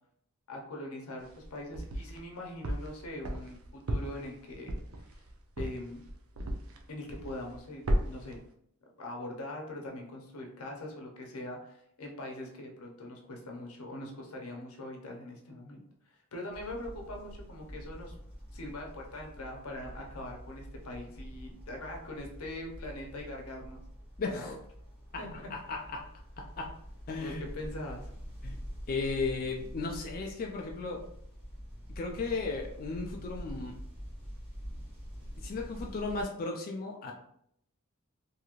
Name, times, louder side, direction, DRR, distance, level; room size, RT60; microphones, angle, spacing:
voice 1, 0.5-4.8 5.6-6.0 6.9-8.4 9.0-15.8 16.1-18.1 18.5-23.8 24.2-24.6 25.2-25.5 27.2-28.1, left 1 dB, 85° left, 1 dB, 0.7 m, -42 dB
sound 1, 1.2-2.2 2.6-6.8 7.1-7.6 7.9-8.4, equal, 70° right, 0.5 m, -34 dB
sound 2, 16.5-36.2, equal, 25° right, 1.3 m, -46 dB
voice 2, 24.2-24.5 25.3-26.0 26.6-26.7 27.1-27.4 28.4-28.6 28.9-31.0 31.9-33.7 35.4-37.1, left 3 dB, 40° left, 0 dB, 0.3 m, -35 dB
2.9 x 2.7 x 2.4 m, 0.71 s
head